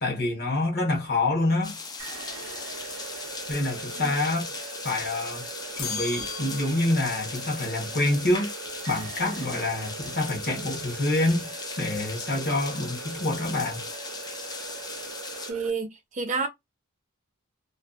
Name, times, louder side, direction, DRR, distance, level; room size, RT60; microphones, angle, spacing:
voice 1, 0.0-1.8 3.5-4.5 4.8-5.5 5.8-8.5 8.9-11.5 11.8-13.8, left 2 dB, 45° left, 0.9 m, -27 dB
sound 1, 1.6-15.5, left 4 dB, 20° left, 0.3 m, -38 dB
sound 2, 2.0-15.7, right 6 dB, 75° right, 0.5 m, -41 dB
sound 3, 5.8-7.2, left 5 dB, 70° left, 0.6 m, -36 dB
voice 2, 15.5-16.5, right 4 dB, 35° right, 0.6 m, -29 dB
2.5 x 2.2 x 2.3 m
head